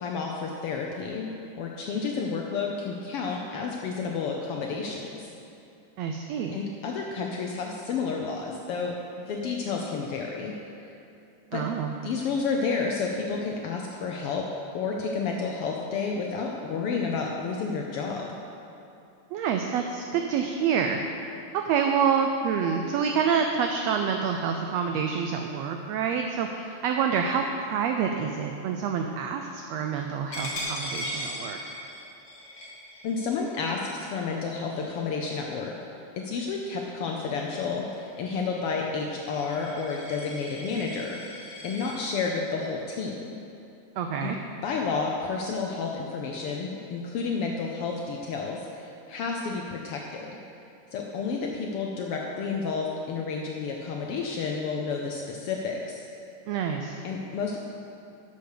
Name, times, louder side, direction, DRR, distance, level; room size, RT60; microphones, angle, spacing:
voice 1, 0.0-5.3 6.5-10.9 11.5-11.6 12.0-14.5 14.7-18.3 33.0-35.7 36.2-43.3 44.2-44.3 44.6-50.4 50.9-56.1 57.0-57.6, left 4 dB, 90° left, 0 dB, 1.2 m, -31 dB
voice 2, 6.0-6.5 11.5-11.9 19.3-21.0 21.5-31.6 44.0-44.4 56.5-57.0, right 6 dB, 80° right, 4 dB, 1.5 m, -27 dB
Coin (dropping), 30.3-35.7 36.2-36.5 36.8-42.0, equal, 50° left, 2.5 m, -39 dB
11.0 x 6.5 x 6.5 m, 2.8 s
omnidirectional pair, 3.5 m